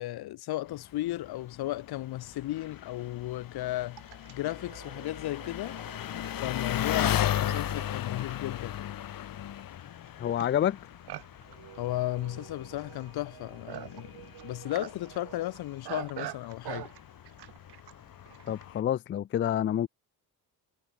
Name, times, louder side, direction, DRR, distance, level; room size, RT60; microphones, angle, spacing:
voice 1, 0.0-4.0 4.3-5.8 6.4-8.9 11.8-16.9, left 15 dB, 75° left, 1.0 m, -35 dB
Engine, 0.7-18.8, left 11 dB, 60° left, 1.6 m, -37 dB
Livestock farm animals working animals, 2.0-2.1 2.8-18.7, right 15 dB, 80° right, 1.9 m, -46 dB
voice 2, 10.2-10.8 18.5-19.9, left 10 dB, 35° left, 0.4 m, -28 dB
cardioid pair, 105°, 38 cm